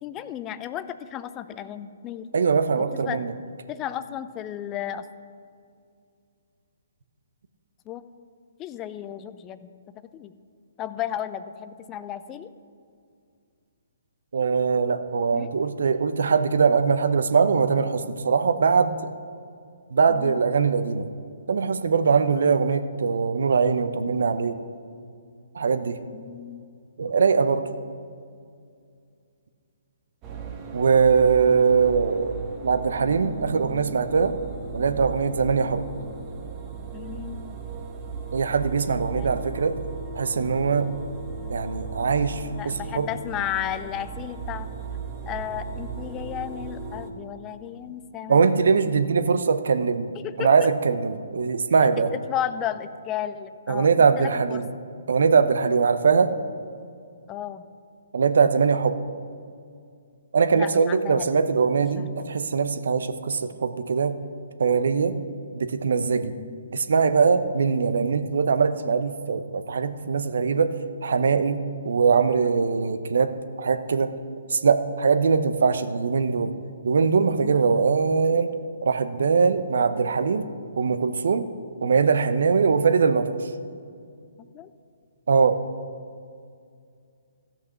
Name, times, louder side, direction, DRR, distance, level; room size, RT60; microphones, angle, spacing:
voice 1, 0.0-2.3 2.8-3.2 3.7-5.1 7.9-8.0 8.6-9.6 10.0-10.3 10.8-12.5 15.3-15.5 20.1-20.4 26.1-26.6 36.9-37.6 39.2-39.4 42.5-44.7 45.3-48.4 50.1-50.7 52.0-53.9 54.2-54.6 57.3-57.6 60.5-61.3 62.0-62.3 66.4-66.6 77.4-77.8 84.4-84.7, left 11 dB, 20° left, 13 dB, 0.5 m, -34 dB
voice 2, 2.3-3.3 14.3-19.0 19.9-21.1 21.5-24.6 25.5-26.0 27.0-27.6 30.7-32.4 32.6-34.3 34.7-35.8 38.3-39.8 40.1-40.9 41.5-43.1 48.3-50.1 50.4-52.1 53.7-54.7 55.1-56.3 58.1-59.0 60.3-64.1 64.6-65.1 65.5-66.3 66.7-70.7 71.0-73.3 73.6-74.1 74.5-76.5 76.8-78.5 78.8-80.4 80.8-81.5 81.8-83.5 85.3-85.6, right 5 dB, 65° right, 10 dB, 0.8 m, -21 dB
sound 1, 30.2-47.1, right 4 dB, 25° right, 1.2 m, -36 dB
15.5 x 5.9 x 5.9 m, 2.3 s
figure-of-eight pair, 130°, 0 cm